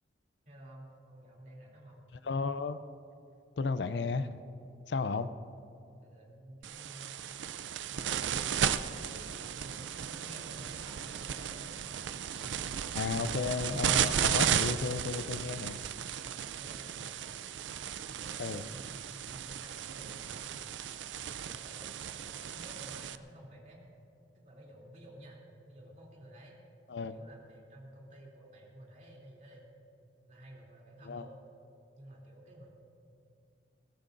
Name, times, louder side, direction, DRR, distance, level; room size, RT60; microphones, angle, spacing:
voice 1, 0.4-2.0 6.0-7.2 7.9-11.7 16.6-17.2 18.1-20.6 21.2-21.8 22.1-23.8 24.3-25.4 25.6-26.6 27.1-29.7 30.3-31.4 32.0-32.7, right 1 dB, 45° right, -2 dB, 3.0 m, -52 dB
voice 2, 2.2-2.8 3.6-4.3 4.9-5.3 12.9-15.8 18.4-18.6 26.9-27.2 31.1-31.3, left 4 dB, 70° left, 13 dB, 0.5 m, -33 dB
sound 1, 6.6-23.1, right 8 dB, 90° right, 0.5 m, -35 dB
21.5 x 17.0 x 2.6 m, 2.6 s
head